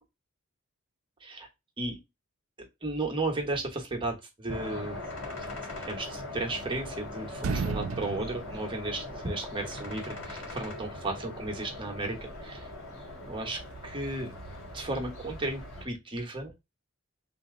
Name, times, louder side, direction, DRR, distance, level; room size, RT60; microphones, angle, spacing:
voice 1, 2.6-5.0 5.4-5.5 5.8-12.7 13.3-14.3 14.7-16.7, right 2 dB, 25° right, 1 dB, 1.0 m, -34 dB
sound 1, 4.5-15.8, left 2 dB, 70° left, 2.2 m, -41 dB
sound 2, 6.2-7.0 7.3-9.5, right 5 dB, 75° right, 0.4 m, -35 dB
3.4 x 2.8 x 3.6 m, 0.22 s
head